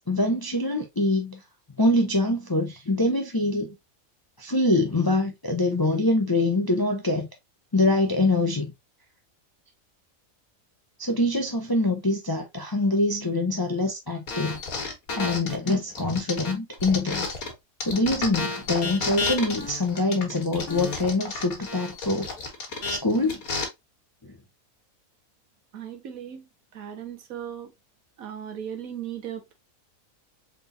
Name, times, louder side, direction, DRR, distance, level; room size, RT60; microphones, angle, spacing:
voice 1, 0.1-1.4 1.8-3.7 4.4-7.3 7.7-8.7 11.0-14.6 15.2-17.3 17.8-22.3 22.9-23.4, left 2 dB, 30° left, 0.4 m, -24 dB
sound 1, 14.3-17.5 17.8-23.6, left 4 dB, 80° left, 1.8 m, -31 dB
voice 2, 25.7-26.5 26.7-27.7 28.2-29.5, right 9 dB, 75° right, 1.4 m, -37 dB
4.1 x 3.6 x 2.6 m
omnidirectional pair, 1.5 m